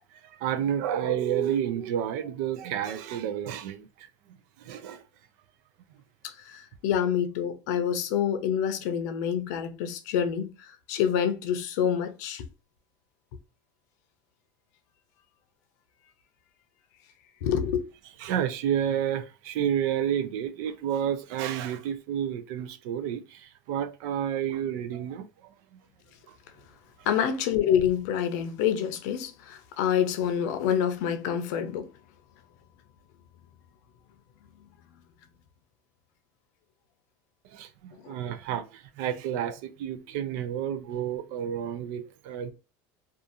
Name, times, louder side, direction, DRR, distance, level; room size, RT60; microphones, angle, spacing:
voice 1, 0.1-4.1 4.6-5.0 18.2-25.5 26.3-26.4 37.4-42.5, right 9 dB, 70° right, 0.4 m, -30 dB
voice 2, 6.2-12.4 17.4-17.8 27.1-31.9 38.0-38.2, left 8 dB, 75° left, 0.5 m, -27 dB
2.6 x 2.4 x 2.5 m
supercardioid pair, 135°, 9 cm